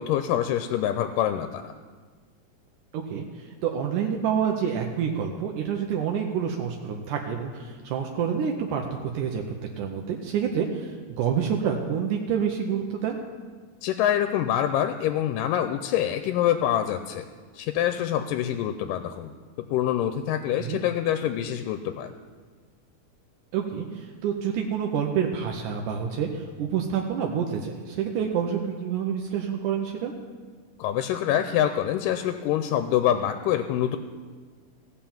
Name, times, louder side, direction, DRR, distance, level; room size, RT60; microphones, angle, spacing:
voice 1, 0.0-1.8 13.8-17.3 17.5-19.3 19.6-22.1 30.8-34.0, left 11 dB, 85° left, 8 dB, 2.2 m, -25 dB
voice 2, 2.9-9.4 9.8-13.2 20.6-20.8 23.5-30.1, right 7 dB, 80° right, 2 dB, 2.2 m, -28 dB
15.5 x 5.8 x 7.1 m, 1.5 s
omnidirectional pair, 3.7 m